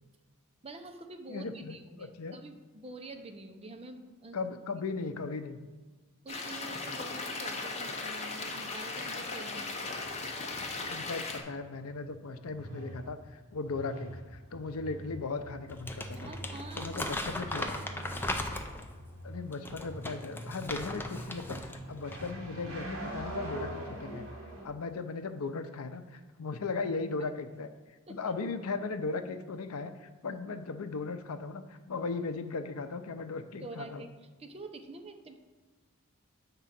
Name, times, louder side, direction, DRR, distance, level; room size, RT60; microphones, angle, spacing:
voice 1, 0.6-4.4 6.2-9.9 16.2-17.3 17.9-18.2 28.1-28.2 30.3-30.4 33.6-34.1 34.4-35.4, right 2 dB, 25° right, 5 dB, 0.7 m, -46 dB
voice 2, 1.3-2.4 4.3-5.6 10.8-16.3 16.8-17.7 19.2-24.3 24.6-27.7 28.1-34.1, left 4 dB, 70° left, 9 dB, 0.6 m, -37 dB
sound 1, 6.3-11.4, left 3 dB, 30° left, 0.9 m, -37 dB
sound 2, 9.8-24.7, right 1 dB, 65° right, 2.1 m, -44 dB
Crumpling crinkling, 15.7-18.9 19.5-21.8 22.1-22.3, left 1 dB, 10° left, 0.5 m, -37 dB
8.1 x 3.7 x 5.9 m, 1.3 s
head